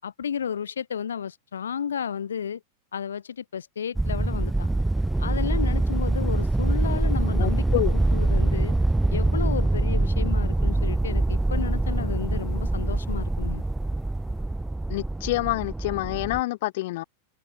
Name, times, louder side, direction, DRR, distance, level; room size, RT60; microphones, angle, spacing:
voice 1, 0.0-2.6 2.9-4.7 5.2-7.6 7.9-8.7 9.1-13.6, left 7 dB, 70° left, 6.4 m, -32 dB
sound 1, 4.0-16.4, right 2 dB, 5° right, 0.5 m, -24 dB
voice 2, 7.4-7.9 14.9-17.0, left 18 dB, 50° left, 2.6 m, -27 dB
figure-of-eight pair, 90°, 0 cm